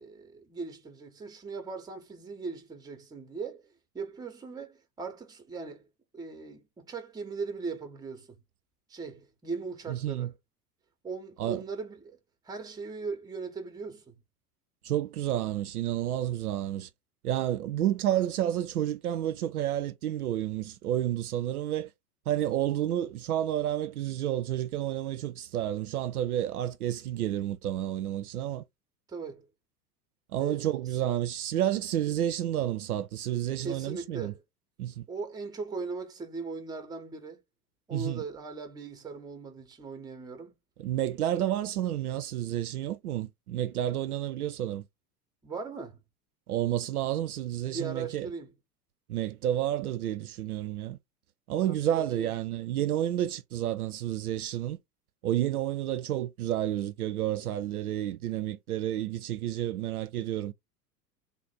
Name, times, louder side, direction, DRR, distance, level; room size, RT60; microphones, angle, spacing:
voice 1, 0.0-5.9 6.1-8.4 8.9-10.3 11.0-12.2 12.4-14.2 29.1-29.5 30.4-30.7 33.6-34.4 35.1-37.4 37.9-40.6 45.4-46.0 47.7-48.5 51.7-52.3, right 4 dB, 10° right, 0.7 m, -39 dB
voice 2, 9.9-10.3 11.4-11.6 14.8-16.9 17.2-21.9 22.3-28.6 30.3-34.3 34.8-35.0 37.9-38.2 40.8-44.8 46.5-48.3 49.1-51.0 51.5-54.8 55.2-60.5, right 12 dB, 65° right, 0.5 m, -30 dB
3.3 x 2.5 x 4.2 m
figure-of-eight pair, 85°, 49 cm